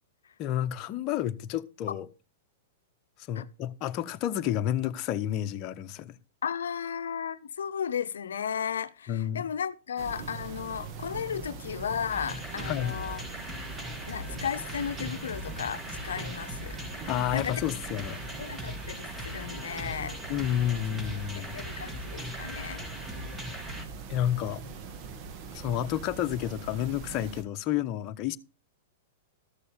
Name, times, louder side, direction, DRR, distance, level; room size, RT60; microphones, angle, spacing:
voice 1, 0.4-2.1 3.3-6.1 9.1-9.4 12.7-12.9 17.1-18.2 20.3-21.5 24.1-24.6 25.5-28.4, left 11 dB, 40° left, 1.0 m, -30 dB
voice 2, 6.4-13.2 14.1-16.8 17.3-17.6 18.4-20.2 21.5-22.8, left 8 dB, 85° left, 0.7 m, -34 dB
sound 1, 10.0-27.4, right 5 dB, 40° right, 1.7 m, -42 dB
sound 2, 12.1-23.9, left 1 dB, 15° right, 2.7 m, -40 dB
14.0 x 6.9 x 5.1 m
hypercardioid pair, 120°, 0 cm